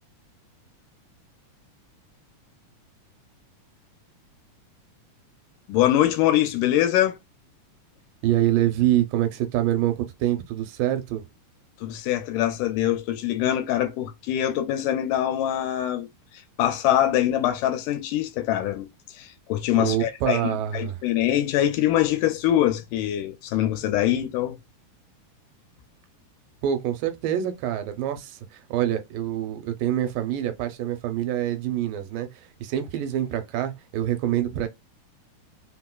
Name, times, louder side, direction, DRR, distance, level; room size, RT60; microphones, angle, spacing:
voice 1, 5.7-7.2 11.8-16.1 16.3-24.6, left 12 dB, 80° left, 2.0 m, -24 dB
voice 2, 8.2-11.2 19.8-21.0 26.6-34.7, right 12 dB, 90° right, 2.4 m, -26 dB
5.1 x 2.1 x 2.2 m
omnidirectional pair, 3.8 m